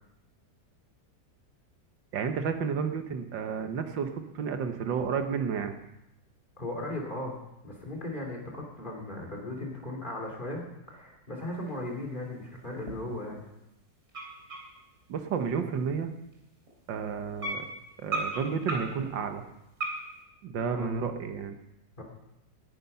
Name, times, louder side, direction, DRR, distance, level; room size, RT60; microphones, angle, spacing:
voice 1, 2.1-4.1 4.4-5.8 15.1-16.1 16.9-17.7 18.0-19.4 20.4-21.6, right 6 dB, 85° right, 7 dB, 1.9 m, -31 dB
voice 2, 6.6-7.4 7.6-10.6 10.9-13.4 20.7-20.9 22.0-22.1, left 1 dB, 25° left, -1 dB, 3.2 m, -37 dB
sound 1, 11.7-11.8 12.2-12.3 12.9-13.2 13.5-13.6 14.1-15.0 15.6-15.7 16.3-16.4 16.7-16.9 17.4-19.1 19.8-20.2, right 2 dB, 35° right, 3.6 m, -35 dB
19.0 x 9.6 x 5.7 m, 0.90 s
omnidirectional pair, 1.9 m